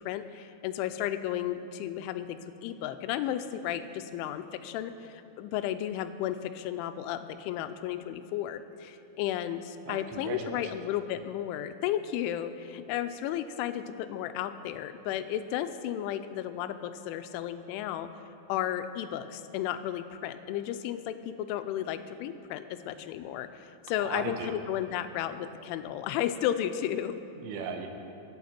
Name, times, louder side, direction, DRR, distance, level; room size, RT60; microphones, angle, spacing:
voice 1, 0.0-18.1 18.5-27.2, left 11 dB, 85° left, 10 dB, 3.0 m, -33 dB
voice 2, 9.9-10.7 24.0-24.6 27.4-27.9, right 6 dB, 90° right, 4 dB, 3.6 m, -37 dB
23.5 x 8.6 x 4.4 m, 2.8 s
omnidirectional pair, 5.5 m